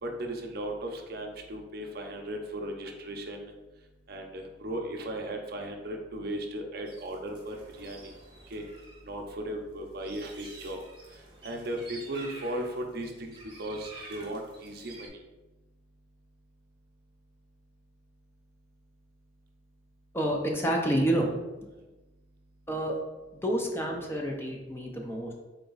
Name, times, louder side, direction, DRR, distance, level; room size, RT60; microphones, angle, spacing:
voice 1, 0.0-8.1 8.5-15.2 21.7-21.9, right 1 dB, 50° right, 2 dB, 0.6 m, -37 dB
sound 1, 6.9-9.0 9.3-15.1, right 2 dB, 25° right, 0.9 m, -49 dB
voice 2, 20.1-21.3 22.7-23.0 23.4-25.3, right 1 dB, 10° left, 0 dB, 0.5 m, -28 dB
3.9 x 3.4 x 3.9 m, 1.1 s
head